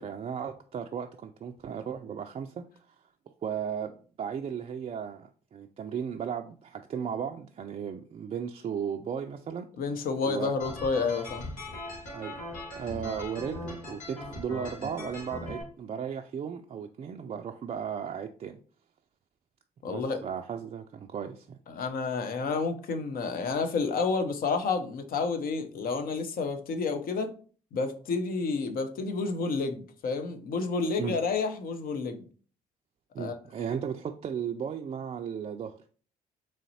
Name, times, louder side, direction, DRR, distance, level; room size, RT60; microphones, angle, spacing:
voice 1, 0.0-2.9 3.4-9.7 10.2-10.5 12.1-12.4 12.8-18.6 19.9-21.6 31.0-31.2 33.1-35.8, right 7 dB, 35° right, 0.4 m, -35 dB
voice 2, 9.8-11.5 19.8-20.2 21.7-27.3 27.7-32.2 33.2-33.7, left 4 dB, 50° left, 0.6 m, -30 dB
sound 1, 10.6-15.6, left 2 dB, 80° left, 1.5 m, -40 dB
3.9 x 3.1 x 2.8 m
hypercardioid pair, 50°, 18 cm